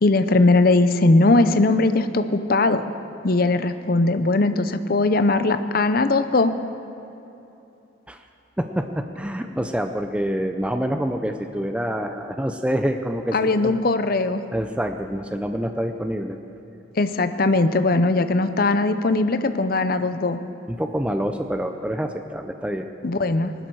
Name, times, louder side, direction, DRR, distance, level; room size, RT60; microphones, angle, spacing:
voice 1, 0.0-2.8 3.2-6.5 13.3-14.4 16.9-20.4 23.0-23.5, left 2 dB, 50° left, 10 dB, 0.6 m, -19 dB
voice 2, 8.6-13.8 14.5-16.4 20.7-22.9, equal, 5° right, 6 dB, 0.5 m, -26 dB
20.5 x 12.0 x 4.7 m, 2.9 s
head